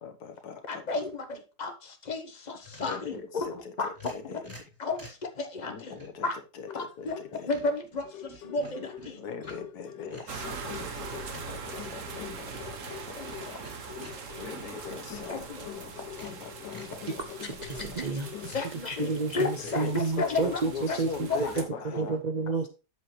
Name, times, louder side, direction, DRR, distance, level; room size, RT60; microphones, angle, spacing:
voice 1, 0.0-0.9 2.8-4.5 5.7-7.5 9.2-17.2 17.9-18.1 19.3-22.2, left 6 dB, 65° left, 8 dB, 1.6 m, -42 dB
voice 2, 0.7-3.5 3.8-3.9 4.8-5.9 6.2-6.3 6.7-7.1 7.4-9.2 13.2-13.3 15.3-15.6 18.5-20.6 20.9-21.7 21.9-22.1, left 3 dB, 30° left, 7 dB, 1.1 m, -33 dB
sound 1, 2.6-3.1 3.9-5.3 5.9-6.2 6.8-7.3 7.5-9.7 10.1-10.4 11.3-15.7 16.1-17.0 17.6-18.0 18.3-18.8 19.5-19.8, equal, 10° right, 2.9 m, -49 dB
sound 2, 6.7-7.7 8.0-18.7, left 10 dB, 80° left, 1.4 m, -45 dB
sound 3, 10.3-21.6, right 5 dB, 50° right, 1.4 m, -42 dB
voice 3, 17.4-21.3 21.6-22.7, right 4 dB, 80° right, 6 dB, 0.3 m, -31 dB
8.3 x 7.4 x 3.1 m, 0.31 s
omnidirectional pair, 1.9 m